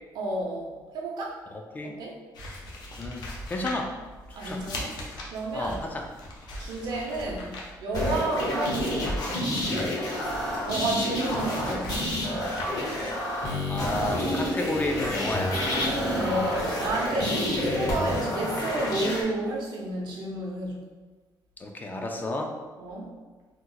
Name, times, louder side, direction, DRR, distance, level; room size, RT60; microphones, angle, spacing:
voice 1, 0.1-1.4 1.8-2.2 4.3-5.0 5.3-5.8 6.6-9.3 10.6-11.9 16.0-20.9 22.8-23.1, right 2 dB, 80° right, -1 dB, 0.7 m, -31 dB
voice 2, 1.5-1.9 3.0-3.2 3.5-3.9 4.3-4.6 5.5-6.1 9.7-9.9 13.7-15.6 21.6-22.6, left 2 dB, 25° left, 3 dB, 0.3 m, -32 dB
sound 1, 2.3-17.3, left 1 dB, 70° left, 0.6 m, -41 dB
sound 2, 7.9-19.2, left 1 dB, 55° left, 1.0 m, -28 dB
2.9 x 2.1 x 3.8 m, 1.3 s
cardioid pair, 150°, 8 cm